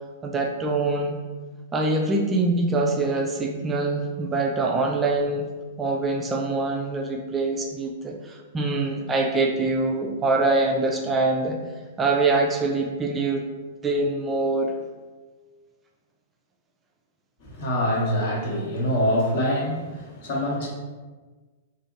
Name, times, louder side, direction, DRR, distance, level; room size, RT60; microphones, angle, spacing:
voice 1, 0.2-1.2 1.7-5.5 5.8-11.6 12.0-13.4 13.8-14.7, right 2 dB, 20° right, 1 dB, 0.3 m, -24 dB
voice 2, 17.4-20.7, equal, 55° left, -4 dB, 0.9 m, -25 dB
2.7 x 2.6 x 2.5 m, 1.3 s
figure-of-eight pair, 105°, 0 cm